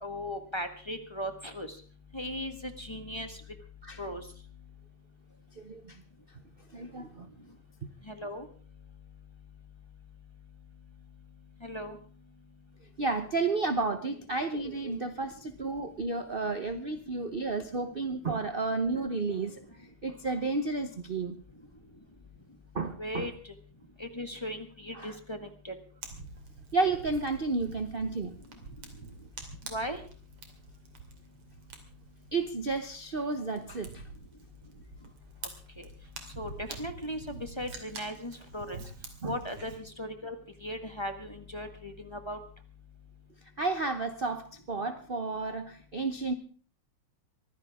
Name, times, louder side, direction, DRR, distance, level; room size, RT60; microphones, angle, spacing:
voice 1, 0.0-1.7 2.1-3.4 4.0-4.2 8.1-8.4 11.6-12.0 23.0-23.3 24.0-25.7 29.7-30.0 35.8-35.9 36.4-38.8 39.2-40.3 40.6-42.4, equal, 15° left, 6 dB, 1.3 m, -37 dB
voice 2, 5.5-6.0 6.7-7.3 13.0-21.4 22.7-23.3 24.9-25.2 26.7-28.3 32.3-34.0 39.2-39.4 43.6-46.3, right 3 dB, 55° right, 8 dB, 0.6 m, -32 dB
Fire, 26.0-39.8, right 4 dB, 85° right, 3.6 m, -47 dB
23.5 x 15.5 x 3.6 m, 0.40 s
omnidirectional pair, 2.4 m